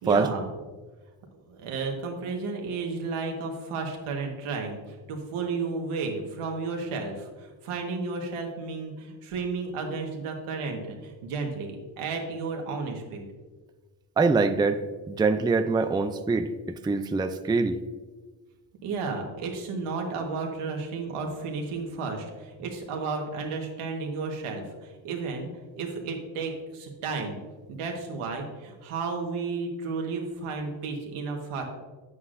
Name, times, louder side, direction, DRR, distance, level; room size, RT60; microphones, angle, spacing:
voice 1, 0.0-0.5 1.5-13.3 18.8-25.5 25.8-27.4 27.7-31.6, right 4 dB, 85° right, 2 dB, 1.5 m, -33 dB
voice 2, 14.2-14.8 15.1-17.8, right 4 dB, 10° right, 9 dB, 0.4 m, -24 dB
9.4 x 8.2 x 2.6 m, 1.3 s
cardioid pair, 80°, 49 cm